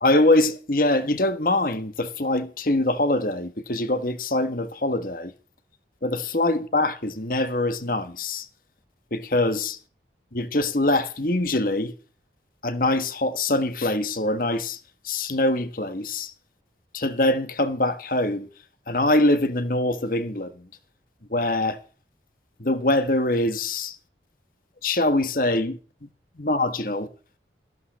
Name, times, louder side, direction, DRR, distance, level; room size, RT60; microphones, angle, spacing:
voice 1, 0.0-5.3 6.0-8.5 9.1-9.8 10.3-11.9 12.6-14.8 15.0-16.3 16.9-18.5 18.9-20.7 21.3-21.8 22.6-24.0 24.8-26.1 26.4-27.1, left 2 dB, 50° left, 1.5 m, -23 dB
14.0 x 12.5 x 4.2 m
head